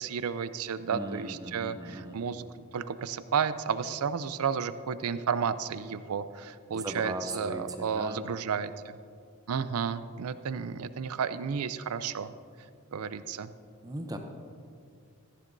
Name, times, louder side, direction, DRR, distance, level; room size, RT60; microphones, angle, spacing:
voice 1, 0.0-8.7 9.5-12.3 12.9-13.5, right 6 dB, 85° right, 13 dB, 0.4 m, -32 dB
voice 2, 0.9-2.2 6.7-8.3 13.8-14.2, right 1 dB, 15° right, 5 dB, 0.6 m, -38 dB
14.5 x 10.0 x 2.6 m, 2.4 s
head